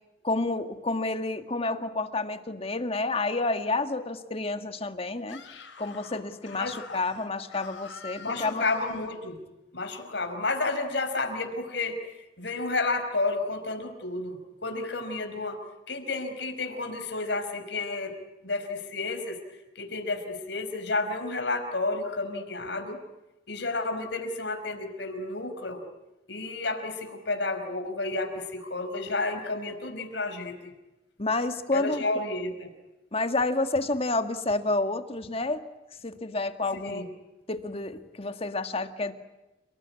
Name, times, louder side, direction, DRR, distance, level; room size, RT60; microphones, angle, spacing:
voice 1, 0.2-5.5 5.8-8.6 31.2-32.0 33.1-35.7 36.0-37.0 37.5-39.1, left 2 dB, 30° left, 8 dB, 1.8 m, -29 dB
Screaming, 5.2-9.2, left 5 dB, 85° left, 6.1 m, -46 dB
voice 2, 6.6-7.0 8.2-9.4 9.7-12.0 12.4-15.6 15.9-18.1 18.4-19.4 19.7-23.0 23.5-25.8 26.3-30.7 31.7-32.7 36.8-37.0, left 3 dB, 65° left, 6 dB, 4.9 m, -31 dB
30.0 x 19.5 x 9.7 m, 1.0 s
head